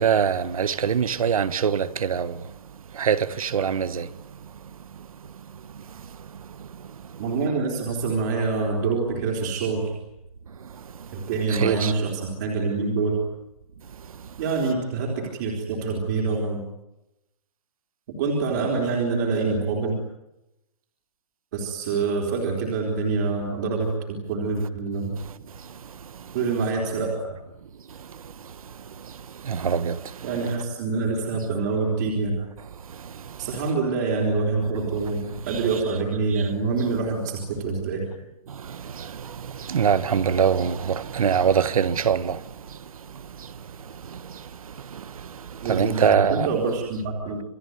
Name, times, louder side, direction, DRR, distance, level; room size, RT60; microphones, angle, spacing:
voice 1, 0.0-2.4 2.9-4.1 11.5-11.9 29.4-30.0 30.3-30.6 35.5-35.9 36.3-36.4 38.5-42.4 44.1-44.2 44.9-45.0 45.6-46.5, right 7 dB, 65° right, 1.4 m, -23 dB
voice 2, 7.2-9.9 11.1-13.2 14.4-16.6 18.2-20.0 21.5-25.2 26.3-27.3 30.2-32.4 33.4-38.1 45.6-47.4, right 4 dB, 30° right, 3.9 m, -26 dB
28.0 x 20.5 x 9.5 m
hypercardioid pair, 180°, 19 cm